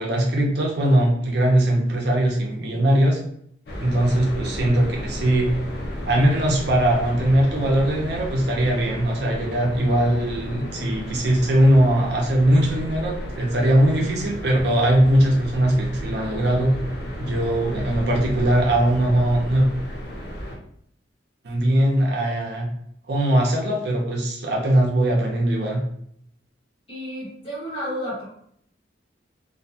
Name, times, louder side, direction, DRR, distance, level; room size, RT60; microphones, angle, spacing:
voice 1, 0.0-3.2 3.8-5.6 6.1-16.7 17.2-19.7 21.4-22.7 23.1-25.8, right 1 dB, 60° right, 0 dB, 0.6 m, -20 dB
sound 1, 3.7-20.6, equal, 60° left, 0.6 m, -33 dB
voice 2, 26.9-28.2, equal, 30° left, -7 dB, 1.3 m, -31 dB
2.6 x 2.2 x 2.7 m, 0.70 s
head